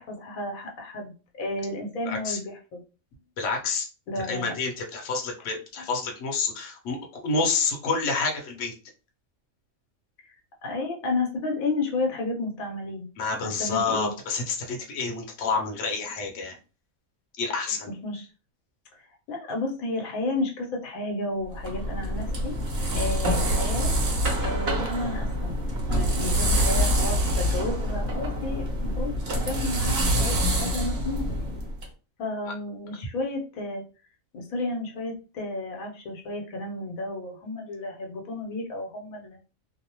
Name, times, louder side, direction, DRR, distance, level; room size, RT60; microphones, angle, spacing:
voice 1, 0.0-2.8 4.1-4.5 10.3-10.4 10.6-13.1 13.4-14.1 18.0-18.3 18.9-19.0 19.3-22.5 22.9-23.9 24.4-25.5 25.9-29.1 29.5-31.3 32.2-33.8 34.3-39.5, left 2 dB, 85° left, 1 dB, 1.2 m, -32 dB
voice 2, 2.1-2.4 3.4-3.9 4.3-7.0 7.2-8.7 13.2-16.6 17.4-17.9 32.5-32.6, left 4 dB, 65° left, 1 dB, 1.0 m, -28 dB
sound 1, 21.5-31.8, equal, 55° right, 0.9 m, -26 dB
2.7 x 2.0 x 2.9 m, 0.34 s
omnidirectional pair, 1.4 m